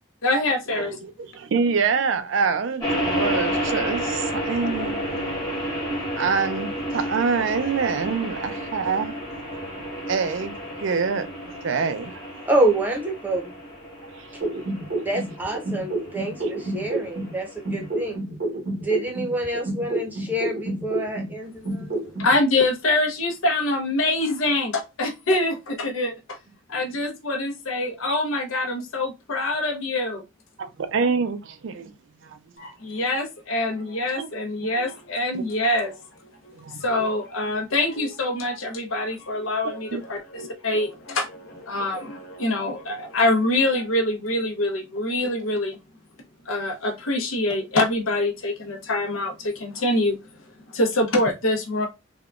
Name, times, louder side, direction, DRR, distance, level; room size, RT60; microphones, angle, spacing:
voice 1, 0.2-0.9 22.2-26.4 26.7-30.2 32.8-35.9 36.8-41.3 41.7-45.8 46.5-50.2 50.7-51.9, left 2 dB, 85° left, 0.8 m, -25 dB
voice 2, 0.7-5.2 6.2-9.2 10.1-12.2 14.1-14.3 30.6-31.9 32.2-32.4 34.2-34.3 35.3-35.4 36.5-36.8 39.9-40.0, right 5 dB, 65° right, 0.4 m, -26 dB
sound 1, 2.8-18.1, equal, 20° left, 1.0 m, -31 dB
voice 3, 12.5-13.5 15.0-18.2 18.8-22.0, right 1 dB, 10° right, 0.7 m, -27 dB
sound 2, 14.4-17.3 17.7-21.3 21.7-22.3, right 2 dB, 90° right, 1.2 m, -29 dB
sound 3, 32.6-34.4 34.7-44.2, left 1 dB, 55° left, 0.9 m, -45 dB
3.5 x 2.2 x 2.4 m
head